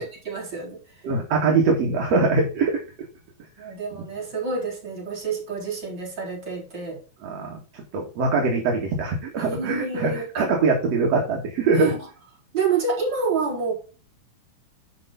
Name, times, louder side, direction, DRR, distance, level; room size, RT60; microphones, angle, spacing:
voice 1, 0.0-1.0 3.6-7.0 9.4-10.5 11.7-12.0 12.5-13.7, right 5 dB, 30° right, -4 dB, 4.9 m, -28 dB
voice 2, 1.0-2.8 7.2-11.9, right 4 dB, 50° right, 0 dB, 2.5 m, -23 dB
10.5 x 5.8 x 4.0 m, 0.34 s
omnidirectional pair, 4.3 m